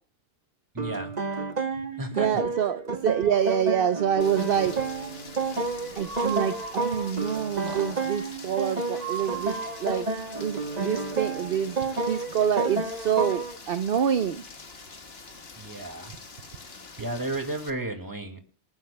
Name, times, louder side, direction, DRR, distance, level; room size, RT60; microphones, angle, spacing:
voice 1, 0.7-1.1 2.0-2.4 15.6-16.1 17.0-18.4, right 2 dB, 15° right, 5 dB, 2.2 m, -33 dB
sound 1, 0.8-13.6, right 3 dB, 35° right, 1.1 m, -31 dB
voice 2, 2.1-4.7 6.0-10.1 10.4-11.8 12.1-14.4, right 9 dB, 55° right, 11 dB, 0.9 m, -26 dB
Rain, 4.2-17.7, left 4 dB, 55° left, 1.8 m, -45 dB
Breathing, 5.9-7.1 7.5-8.2 8.9-10.0, right 8 dB, 80° right, 1.7 m, -37 dB
27.0 x 10.5 x 2.2 m, 0.37 s
omnidirectional pair, 1.2 m